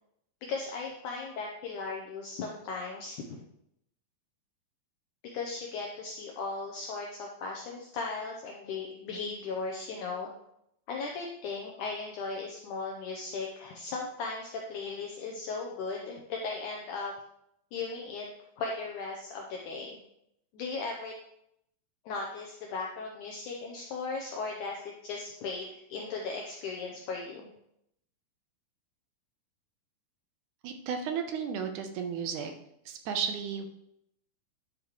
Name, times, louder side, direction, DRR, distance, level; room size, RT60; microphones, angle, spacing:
voice 1, 0.4-3.4 5.2-10.3 10.9-17.1 17.7-18.3 18.6-20.0 20.5-21.1 22.1-27.5, left 4 dB, 70° left, 0 dB, 2.0 m, -37 dB
voice 2, 30.6-32.5 32.9-33.7, right 7 dB, 75° right, 5 dB, 2.0 m, -33 dB
10.5 x 7.4 x 3.2 m, 0.78 s
omnidirectional pair, 4.2 m